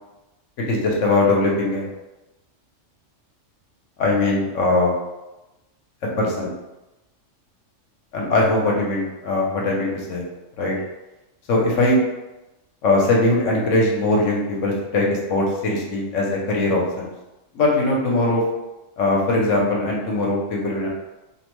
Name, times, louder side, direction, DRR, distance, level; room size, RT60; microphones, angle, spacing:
voice 1, 0.7-1.9 4.0-4.9 6.2-6.5 8.1-10.2 10.6-10.7 11.5-12.0 12.8-17.1 17.5-18.4 19.0-20.9, left 2 dB, 75° left, -2 dB, 1.0 m, -20 dB
2.7 x 2.1 x 3.0 m, 1.0 s
omnidirectional pair, 1.3 m